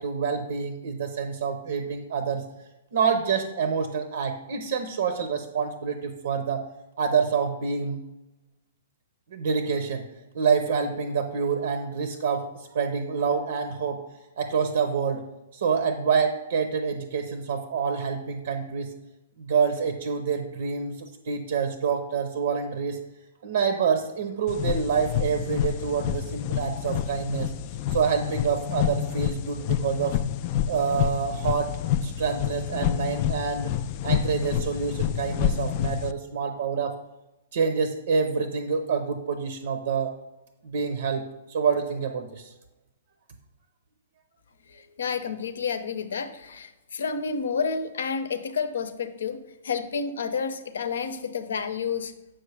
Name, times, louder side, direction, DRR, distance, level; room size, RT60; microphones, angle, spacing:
voice 1, 0.0-2.4 2.9-6.6 7.0-8.0 9.3-10.1 10.3-14.0 14.4-15.2 15.5-18.9 19.4-23.0 23.4-27.5 27.9-30.2 30.7-31.7 32.0-33.7 34.0-36.9 37.5-40.1 40.6-41.2 41.5-42.5, right 6 dB, 70° right, 7 dB, 0.7 m, -27 dB
sound 1, 24.5-36.1, left 10 dB, 45° left, 0.3 m, -28 dB
voice 2, 44.7-49.4 49.6-52.1, left 5 dB, 75° left, 11 dB, 0.7 m, -30 dB
7.6 x 5.9 x 3.3 m, 0.99 s
hypercardioid pair, 125°, 0 cm